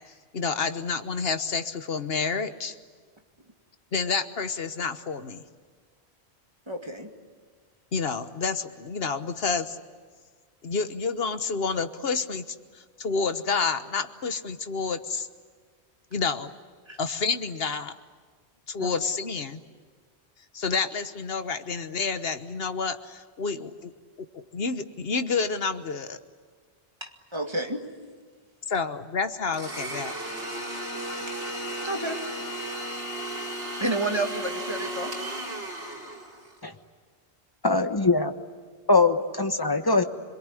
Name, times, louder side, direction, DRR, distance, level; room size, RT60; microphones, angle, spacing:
voice 1, 0.3-2.8 3.9-5.4 7.9-9.8 10.6-12.4 13.0-15.3 16.1-16.5 17.0-17.9 18.7-19.6 20.5-23.9 24.2-26.2 28.7-30.1, left 5 dB, 65° left, 10 dB, 1.4 m, -29 dB
voice 2, 6.7-7.1 16.9-17.0 18.8-18.9 27.0-27.8 31.8-32.2 33.8-35.1, right 2 dB, 25° right, 3 dB, 2.2 m, -30 dB
Domestic sounds home sounds, 29.5-36.6, right 1 dB, 90° right, 4.6 m, -35 dB
voice 3, 37.6-38.3 38.9-40.0, left 3 dB, 20° left, 7 dB, 1.3 m, -22 dB
27.0 x 22.0 x 9.9 m, 1.6 s
omnidirectional pair, 1.1 m